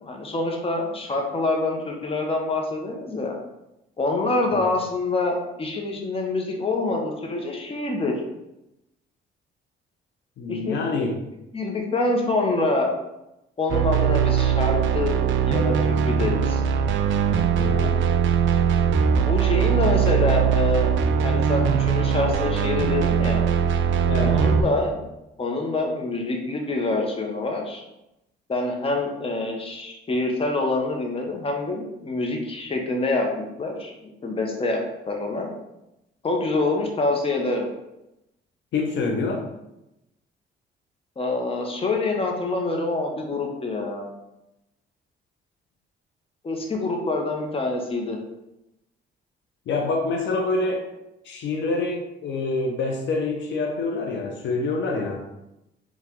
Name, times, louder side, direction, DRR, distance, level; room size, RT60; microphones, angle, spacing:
voice 1, 0.0-3.3 4.0-8.1 10.5-10.8 11.5-12.9 13.6-15.2 15.4-16.6 19.2-23.4 24.3-25.0 25.4-27.8 28.5-33.3 33.6-34.8 35.1-35.5 36.2-37.7 41.2-44.1 46.4-48.2, left 2 dB, 30° left, 1 dB, 0.9 m, -26 dB
voice 2, 10.4-11.2 17.6-18.0 24.0-24.4 38.7-39.4 49.7-50.9 51.2-55.2, left 3 dB, 70° left, 1 dB, 0.7 m, -26 dB
sound 1, 13.7-24.6, right 7 dB, 75° right, 0.4 m, -21 dB
4.6 x 2.4 x 3.7 m, 0.91 s
cardioid pair, 90°, 20 cm